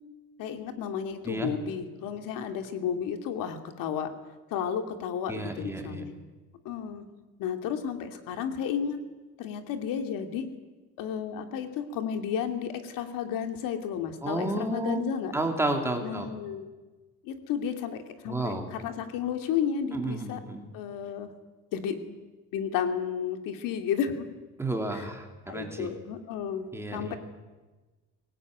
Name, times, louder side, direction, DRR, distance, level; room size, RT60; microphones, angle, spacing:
voice 1, 0.4-4.1 4.5-6.1 6.6-7.1 7.4-9.0 9.4-10.5 11.0-15.3 16.0-16.7 17.2-20.4 20.7-21.3 21.7-22.0 22.5-24.3 24.9-25.0 25.5-26.7 26.9-27.2, left 8 dB, 80° left, 6 dB, 2.5 m, -32 dB
voice 2, 5.3-6.0 14.2-15.0 15.3-16.3 18.3-18.7 19.9-20.6 24.6-25.9 26.7-27.2, right 2 dB, 10° right, 3 dB, 2.6 m, -31 dB
22.5 x 18.5 x 9.4 m, 1.2 s
cardioid pair, 160°, 33 cm